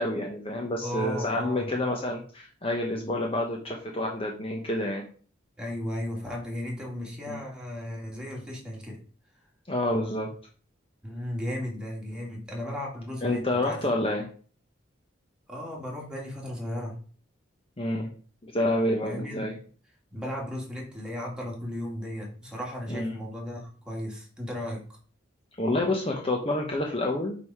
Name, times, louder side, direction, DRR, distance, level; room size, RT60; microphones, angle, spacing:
voice 1, 0.0-5.0 7.3-7.4 9.7-10.3 13.2-14.3 17.8-18.1 18.4-19.6 22.9-23.1 25.6-27.4, left 1 dB, 30° left, 1 dB, 0.9 m, -28 dB
voice 2, 0.8-1.7 5.6-9.0 11.0-14.0 15.5-17.0 19.0-19.5 20.1-24.8, left 1 dB, 5° right, -2 dB, 2.1 m, -35 dB
5.3 x 4.8 x 5.5 m, 0.41 s
head